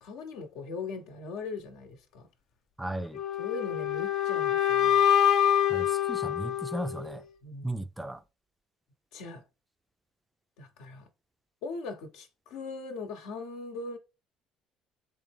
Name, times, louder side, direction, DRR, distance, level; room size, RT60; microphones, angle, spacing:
voice 1, 0.0-2.3 3.4-5.0 7.4-7.7 9.1-9.4 10.6-11.0 11.6-14.0, left 3 dB, 80° left, 0.8 m, -40 dB
voice 2, 2.8-3.2 5.7-7.2 7.6-8.2, right 1 dB, 10° right, 0.3 m, -35 dB
sound 1, 3.1-7.2, left 10 dB, 65° left, 0.5 m, -26 dB
3.7 x 3.2 x 3.3 m
supercardioid pair, 85°, 0 cm